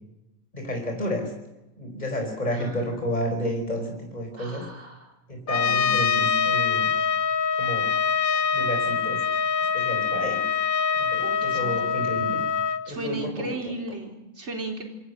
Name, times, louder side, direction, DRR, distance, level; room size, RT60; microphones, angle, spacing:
voice 1, 0.5-1.3 1.8-4.6 5.3-6.9 7.5-7.9 8.5-9.2 9.7-10.4 10.9-12.4 12.9-13.7, equal, 30° left, 2 dB, 4.9 m, -31 dB
voice 2, 2.5-3.0 4.4-5.1 5.6-6.6 11.2-11.9 12.8-14.8, right 2 dB, 55° right, 2 dB, 4.3 m, -36 dB
Trumpet, 5.5-12.8, left 6 dB, 85° left, 1.7 m, -24 dB
26.5 x 26.0 x 6.7 m, 0.97 s
omnidirectional pair, 1.4 m